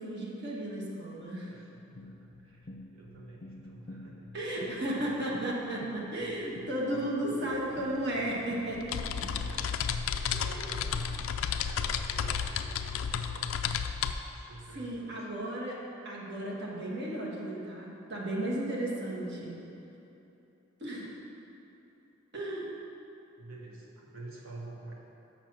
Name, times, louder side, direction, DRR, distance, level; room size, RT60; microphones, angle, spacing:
voice 1, 0.0-1.6 4.3-9.3 10.5-10.7 14.7-15.8 16.0-19.6 20.8-21.1 22.3-22.7, right 1 dB, 55° right, -4 dB, 1.4 m, -34 dB
voice 2, 1.5-4.3 9.3-9.9 10.2-13.6 14.3-15.3 23.4-24.9, right 2 dB, 80° right, -2 dB, 1.3 m, -48 dB
sound 1, 2.0-9.7, left 1 dB, 40° left, 0.6 m, -49 dB
sound 2, 7.5-7.6 7.9-14.1, left 7 dB, 80° left, 0.4 m, -32 dB
6.7 x 6.0 x 6.1 m, 2.9 s
head